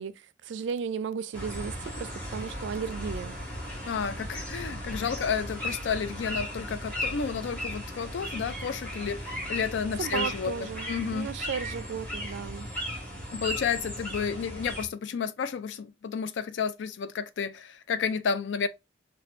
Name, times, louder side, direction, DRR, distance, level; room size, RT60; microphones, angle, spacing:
voice 1, 0.0-3.4 10.0-12.7, right 6 dB, 80° right, 0.3 m, -35 dB
sound 1, 1.3-14.9, equal, 10° left, 1.3 m, -36 dB
voice 2, 3.9-11.3 13.3-18.7, left 6 dB, 80° left, 0.4 m, -31 dB
4.2 x 2.3 x 2.5 m
head